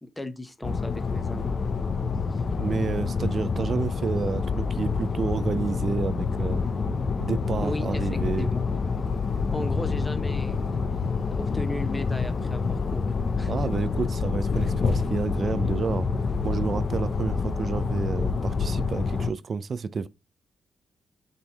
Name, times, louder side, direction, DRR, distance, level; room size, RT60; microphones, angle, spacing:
voice 1, 0.0-1.5 2.3-2.4 7.6-8.1 8.4-8.6 9.5-10.8 11.3-13.7, left 1 dB, 15° left, 0.9 m, -36 dB
sound 1, 0.6-19.3, left 4 dB, 55° left, 0.5 m, -27 dB
voice 2, 2.6-6.6 7.2-8.5 13.5-16.1 16.4-20.1, right 5 dB, 55° right, 0.4 m, -30 dB
5.4 x 2.6 x 3.4 m
hypercardioid pair, 40°, 0 cm